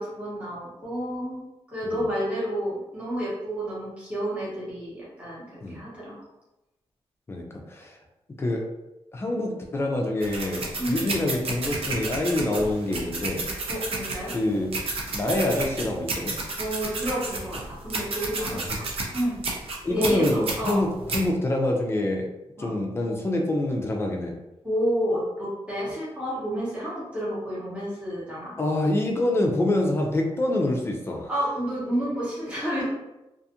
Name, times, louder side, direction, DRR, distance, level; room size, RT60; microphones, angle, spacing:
voice 1, 0.0-1.4 1.7-6.2 10.8-11.0 13.7-14.3 16.6-18.6 19.1-19.4 19.9-20.8 22.6-22.7 24.6-28.5 31.3-32.9, equal, 10° right, -9 dB, 0.8 m, -30 dB
voice 2, 7.3-7.9 8.4-8.6 9.1-13.4 14.3-14.8 15.1-16.4 18.5-18.6 19.8-22.3 22.6-24.3 28.6-31.3, left 1 dB, 25° left, 1 dB, 0.4 m, -26 dB
sound 1, 10.2-21.3, right 3 dB, 65° right, 0.5 m, -32 dB
2.4 x 2.4 x 2.7 m, 0.96 s
wide cardioid pair, 160°, 11 cm